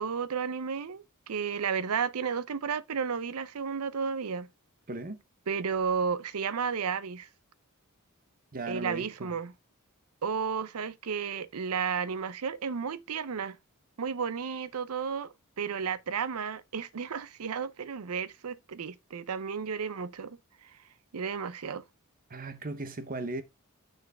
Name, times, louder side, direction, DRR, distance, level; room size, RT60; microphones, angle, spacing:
voice 1, 0.0-4.5 5.5-7.3 8.7-9.5 10.2-13.6 14.0-20.4 21.1-21.8, right 6 dB, 85° right, 0.6 m, -33 dB
voice 2, 4.9-5.2 8.5-9.4 22.3-23.4, right 2 dB, 40° right, 0.9 m, -37 dB
9.6 x 4.5 x 3.5 m
head